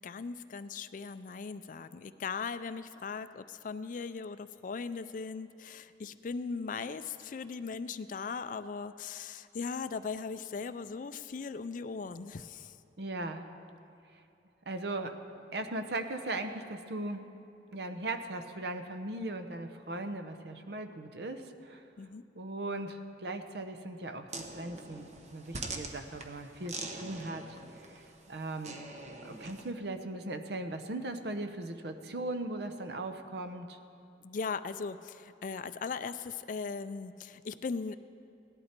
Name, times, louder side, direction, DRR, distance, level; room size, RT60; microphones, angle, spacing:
voice 1, 0.0-12.7 22.0-22.2 34.2-38.0, left 5 dB, 45° left, 13 dB, 0.4 m, -39 dB
voice 2, 13.0-13.5 14.1-14.2 14.7-15.2 15.5-17.2 17.7-21.8 22.3-24.3 24.6-27.6 28.0-28.8 29.2-33.8, right 2 dB, 65° right, 8 dB, 0.8 m, -38 dB
sound 1, 24.3-29.7, right 3 dB, 40° right, 1.0 m, -44 dB
17.5 x 11.5 x 4.4 m, 2.6 s
head